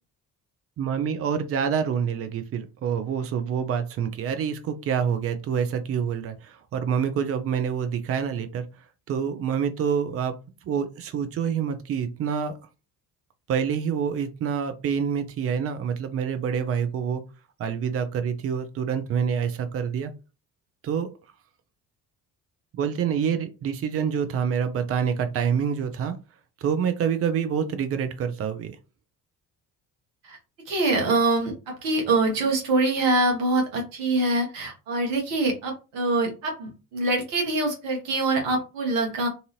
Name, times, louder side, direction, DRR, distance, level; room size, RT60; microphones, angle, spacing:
voice 1, 0.8-8.7 9.1-10.4 10.6-12.5 13.5-17.2 17.6-20.1 20.8-21.2 22.7-26.2 26.6-28.8, right 7 dB, 30° right, 8 dB, 0.5 m, -27 dB
voice 2, 30.7-39.3, right 2 dB, 60° right, 2 dB, 1.2 m, -24 dB
2.7 x 2.5 x 2.7 m, 0.30 s
figure-of-eight pair, 45°, 49 cm